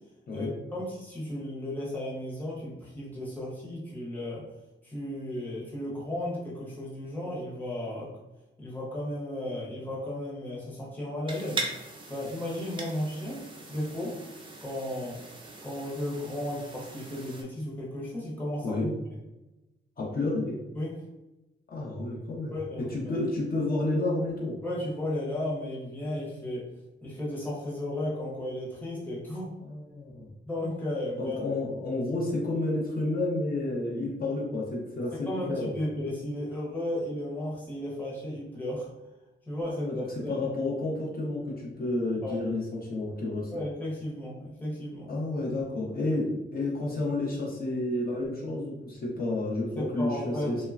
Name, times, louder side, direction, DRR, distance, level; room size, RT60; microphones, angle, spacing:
voice 1, 0.3-4.5 4.8-8.1 8.6-11.7 12.1-14.2 14.6-15.2 15.6-18.8 20.7-21.0 22.5-23.1 24.6-26.7 27.0-29.5 30.4-31.4 35.3-38.9 39.5-40.4 42.2-42.4 43.5-45.1 49.8-50.7, left 1 dB, 10° left, -7 dB, 0.7 m, -34 dB
sound 1, 11.3-17.4, right 2 dB, 25° right, 0.4 m, -40 dB
voice 2, 20.0-20.6 21.7-24.6 29.6-30.3 31.2-35.7 39.6-43.6 45.1-50.7, left 2 dB, 45° left, -4 dB, 0.6 m, -30 dB
3.0 x 2.2 x 2.4 m, 1.0 s
wide cardioid pair, 175°, 21 cm